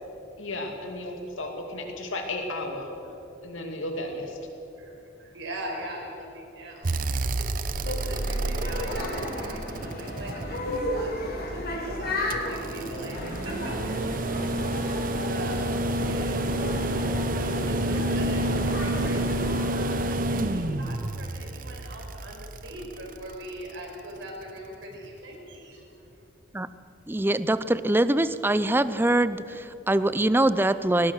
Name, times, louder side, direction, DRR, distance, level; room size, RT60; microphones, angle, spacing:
voice 1, 0.4-2.9 3.4-4.4, left 2 dB, 85° left, 3 dB, 2.7 m, -34 dB
voice 2, 4.8-26.3, right 1 dB, 65° right, 0 dB, 5.2 m, -41 dB
sound 1, 6.8-11.0 12.3-23.5 25.0-25.1, right 1 dB, 45° right, 0.7 m, -29 dB
sound 2, 7.8-19.7, left 1 dB, 50° left, 3.7 m, -34 dB
voice 3, 27.1-31.1, right 1 dB, 10° right, 14 dB, 0.5 m, -23 dB
21.5 x 19.0 x 6.5 m, 2.8 s
head